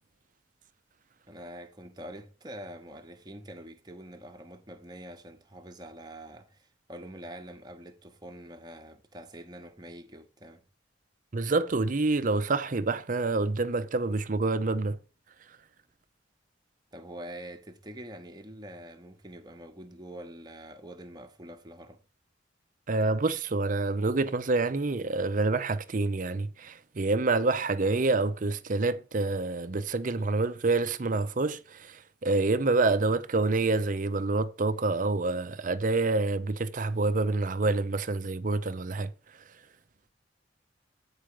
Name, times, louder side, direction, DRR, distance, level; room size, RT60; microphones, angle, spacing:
voice 1, 1.3-10.6 16.9-22.0, right 1 dB, 20° right, 1.0 m, -45 dB
voice 2, 11.3-15.0 22.9-39.1, right 3 dB, 45° right, 0.6 m, -27 dB
8.9 x 4.8 x 4.8 m
head